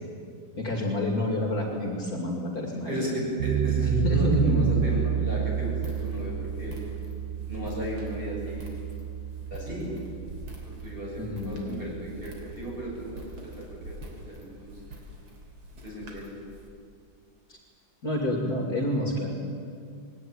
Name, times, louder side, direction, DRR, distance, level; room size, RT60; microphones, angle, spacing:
voice 1, 0.6-3.0 3.8-4.6 11.2-11.9 17.5-17.6 18.0-19.3, left 1 dB, 45° left, 1 dB, 3.0 m, -28 dB
voice 2, 2.9-6.8 7.5-8.7 9.5-9.9 10.6-14.0 14.3-14.7 15.8-16.4, right 1 dB, 25° right, -4 dB, 7.5 m, -35 dB
sound 1, 3.4-14.3, right 10 dB, 60° right, 0.7 m, -31 dB
Walk footsteps, 5.5-16.7, equal, 90° right, 4.2 m, -46 dB
20.5 x 17.5 x 9.9 m, 2.3 s
omnidirectional pair, 2.3 m